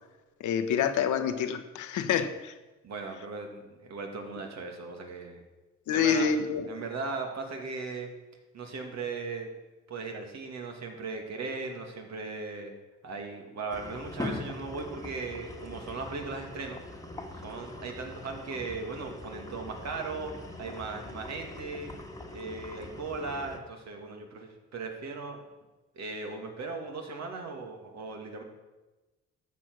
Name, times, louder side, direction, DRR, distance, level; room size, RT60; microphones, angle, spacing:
voice 1, 0.4-2.5 5.9-6.7, left 7 dB, 80° left, 9 dB, 1.1 m, -27 dB
voice 2, 2.8-5.4 5.9-6.3 6.7-8.1 8.5-9.5 9.9-12.7 13.0-16.8 17.4-20.3 20.6-21.9 22.3-25.4 25.9-28.4, right 4 dB, 60° right, 3 dB, 2.4 m, -38 dB
sound 1, 13.7-23.6, left 2 dB, 10° left, 1.6 m, -42 dB
13.0 x 7.6 x 6.2 m, 1.1 s
cardioid pair, 90°, 30 cm